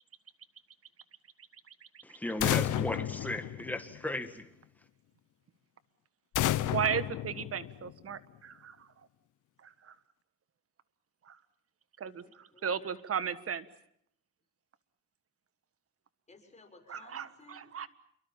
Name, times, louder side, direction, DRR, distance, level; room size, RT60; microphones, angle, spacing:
voice 1, 2.0-4.5, left 1 dB, 5° left, 1.9 m, -36 dB
sound 1, 2.4-4.2 6.3-8.1, left 14 dB, 80° left, 1.0 m, -32 dB
voice 2, 6.7-8.9 9.6-9.9 11.3-11.4 12.0-12.2 12.6-13.7 16.9-17.9, right 8 dB, 50° right, 1.5 m, -35 dB
voice 3, 12.2-13.0 16.3-17.7, left 3 dB, 25° left, 6.8 m, -57 dB
28.0 x 23.0 x 7.2 m
cardioid pair, 90°, 30 cm